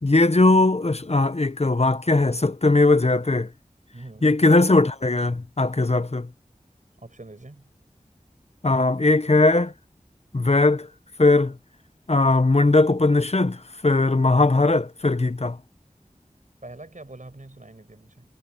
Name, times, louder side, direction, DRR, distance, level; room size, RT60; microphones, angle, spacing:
voice 1, 0.0-3.5 4.2-6.3 8.6-9.7 10.3-10.9 11.2-11.6 12.1-15.6, left 2 dB, 50° left, 0.9 m, -19 dB
voice 2, 3.9-4.3 7.0-7.7 16.6-18.2, right 2 dB, 65° right, 6.8 m, -43 dB
wide cardioid pair, 45°, 14 cm